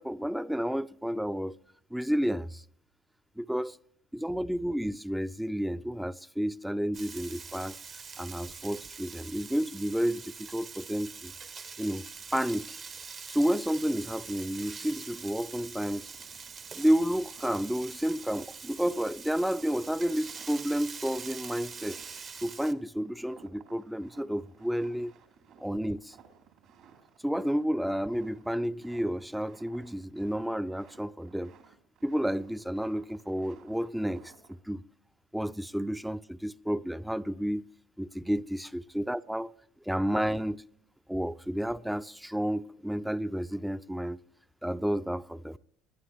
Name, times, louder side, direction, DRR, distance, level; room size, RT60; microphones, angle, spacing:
voice 1, 0.0-1.6 1.9-2.6 3.4-3.8 4.1-7.8 8.2-11.3 11.8-12.1 12.3-12.8 13.3-16.1 16.7-22.0 22.4-25.1 25.6-26.2 27.2-31.5 32.0-34.8 35.3-37.7 38.0-39.5 39.9-40.6 41.1-44.2 44.6-45.6, equal, 5° right, 0.4 m, -31 dB
Frying (food), 6.9-22.7, right 5 dB, 40° right, 0.9 m, -44 dB
sound 1, 15.1-15.2 15.6-34.6, right 6 dB, 70° right, 3.0 m, -58 dB
20.5 x 11.0 x 3.0 m
hypercardioid pair, 70°, 0 cm